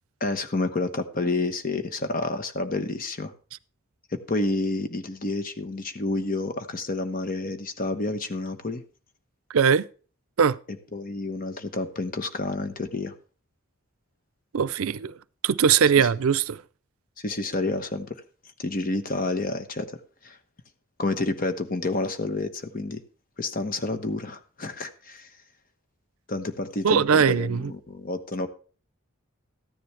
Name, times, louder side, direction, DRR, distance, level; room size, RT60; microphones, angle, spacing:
voice 1, 0.2-3.3 4.1-8.8 10.7-13.1 16.0-16.1 17.2-18.2 18.6-20.4 21.0-23.0 23.4-25.3 26.3-28.5, left 2 dB, 40° left, 1.1 m, -29 dB
voice 2, 9.5-9.9 10.4-10.6 14.5-15.1 15.4-16.6 26.8-27.7, right 7 dB, 90° right, 0.5 m, -21 dB
14.0 x 10.0 x 3.3 m
head